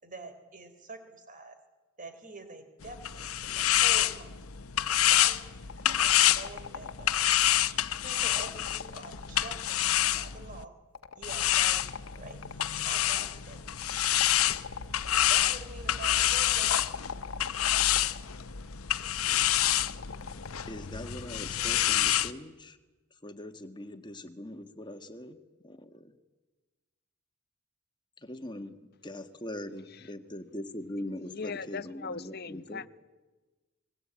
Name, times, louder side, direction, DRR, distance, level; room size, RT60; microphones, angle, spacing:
voice 1, 0.0-1.6 2.0-4.4 5.1-5.4 5.8-7.1 7.4-7.5 8.0-10.7 11.2-11.9 12.2-12.4 12.8-13.6 15.3-16.8, right 2 dB, 40° right, 8 dB, 3.6 m, -46 dB
sound 1, 2.8-10.6 11.2-22.3, left 12 dB, 85° left, 1.0 m, -27 dB
sound 2, 5.7-7.3 8.1-10.0 10.9-12.8 13.8-15.1 16.7-18.3 19.5-20.9, left 6 dB, 70° left, 1.2 m, -43 dB
voice 2, 20.6-22.8 23.2-26.2 28.2-32.9, left 1 dB, 20° left, 7 dB, 1.7 m, -42 dB
voice 3, 31.2-32.9, left 5 dB, 45° left, 15 dB, 0.8 m, -39 dB
29.0 x 21.5 x 8.9 m, 1.2 s
head